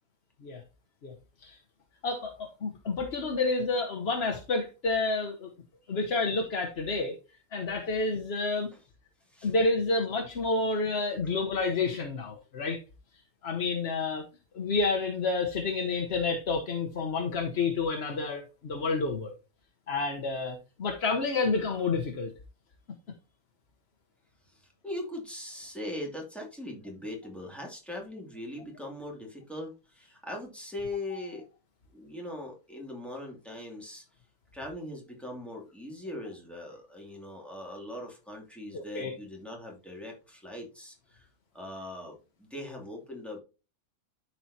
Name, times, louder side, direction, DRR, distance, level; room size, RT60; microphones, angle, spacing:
voice 1, 2.0-5.5 5.9-7.1 7.5-8.7 9.4-12.8 13.4-14.3 14.5-19.3 19.9-22.3 38.7-39.1, left 3 dB, 50° left, 1.1 m, -29 dB
voice 2, 5.8-6.5 9.3-9.5 24.5-31.4 31.9-34.0 34.5-41.3 41.5-43.4, left 1 dB, ahead, 2.3 m, -41 dB
13.0 x 4.6 x 2.7 m
omnidirectional pair, 1.5 m